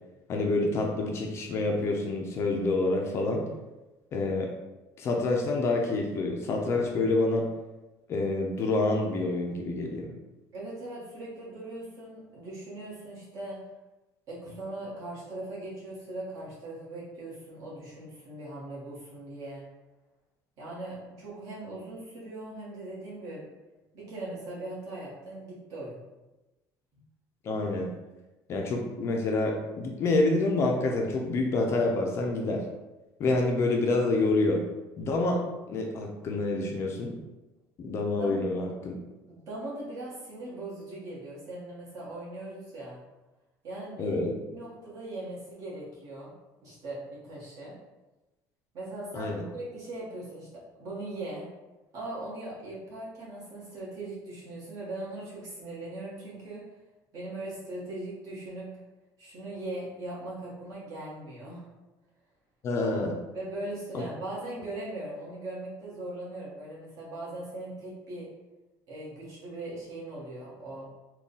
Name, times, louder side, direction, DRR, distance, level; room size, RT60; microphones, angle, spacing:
voice 1, 0.3-3.5 4.1-4.5 5.0-7.5 8.1-10.1 27.4-28.0 28.5-32.6 33.2-34.6 35.0-37.1 37.8-38.9 44.0-44.4 49.1-49.4 62.6-63.2 63.9-64.0, left 2 dB, 35° left, 1 dB, 0.4 m, -27 dB
voice 2, 10.5-13.6 14.3-19.7 20.6-23.5 23.9-26.0 38.2-38.4 39.3-43.0 43.6-44.2 44.5-46.3 46.6-47.8 48.7-51.5 51.9-56.6 57.1-58.7 59.2-61.7 63.3-68.3 68.9-70.9, right 2 dB, 45° right, -6 dB, 1.4 m, -40 dB
3.6 x 2.3 x 3.9 m, 1.1 s
cardioid pair, 175°, 8 cm